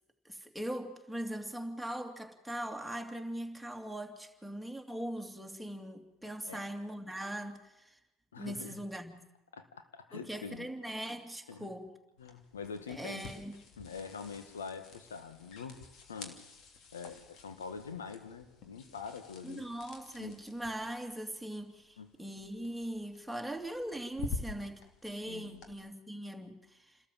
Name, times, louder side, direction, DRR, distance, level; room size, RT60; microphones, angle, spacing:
voice 1, 0.2-8.0 8.4-9.2 10.1-11.9 12.9-13.6 19.4-27.0, right 1 dB, ahead, 2 dB, 2.7 m, -41 dB
voice 2, 8.3-8.8 9.5-10.7 11.5-11.7 12.2-13.2 13.8-16.4 16.9-19.6 20.2-20.4 22.0-22.1 25.3-25.6, left 5 dB, 90° left, 9 dB, 1.6 m, -45 dB
sound 1, 12.2-25.7, left 4 dB, 60° left, 2.9 m, -49 dB
29.5 x 13.5 x 7.5 m, 0.97 s
hypercardioid pair, 70°, 0 cm